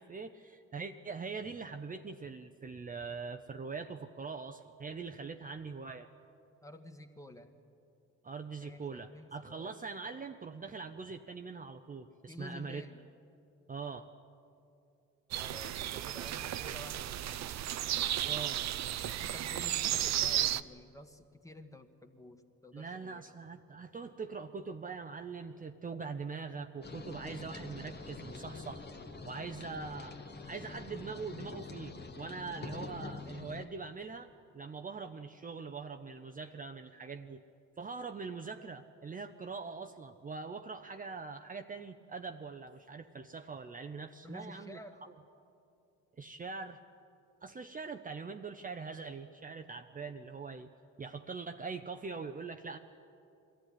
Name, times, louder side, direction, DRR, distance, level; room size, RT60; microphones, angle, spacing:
voice 1, 0.0-6.1 8.2-12.8 13.7-14.1 18.2-18.7 22.7-28.9 29.2-34.3 34.5-37.4 37.8-45.1 46.2-46.8 47.4-50.7 51.0-52.8, right 4 dB, 25° right, 6 dB, 0.7 m, -43 dB
voice 2, 6.6-7.5 8.6-9.7 12.3-13.0 15.4-17.5 19.1-23.3 44.2-45.0, left 1 dB, 10° left, 6 dB, 1.5 m, -51 dB
sound 1, 15.3-20.6, right 12 dB, 65° right, 0.6 m, -34 dB
bonfire ambio, 26.8-33.7, left 3 dB, 35° left, 1.5 m, -45 dB
22.0 x 14.5 x 9.9 m, 2.7 s
cardioid pair, 90°, 30 cm